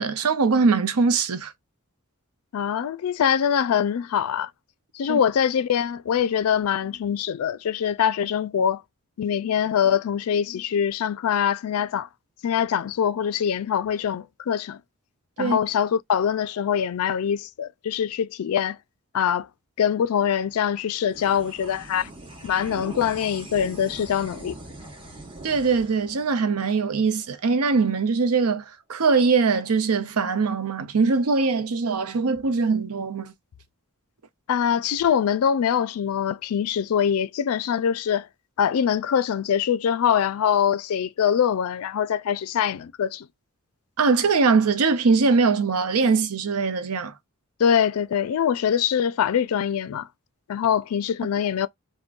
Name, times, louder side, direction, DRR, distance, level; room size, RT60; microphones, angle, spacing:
voice 1, 0.0-1.5 5.1-5.2 15.4-15.6 25.4-28.6 28.9-33.3 44.0-47.1, right 4 dB, 85° right, 0.6 m, -22 dB
voice 2, 2.5-4.5 4.9-8.8 9.2-12.1 12.4-14.8 15.4-18.8 19.1-19.5 19.8-22.1 22.4-24.6 34.5-38.3 38.6-43.3 47.6-50.1 50.5-51.7, left 8 dB, 80° left, 0.3 m, -23 dB
sound 1, 21.1-27.8, right 2 dB, 20° right, 0.9 m, -42 dB
3.6 x 2.1 x 2.4 m
head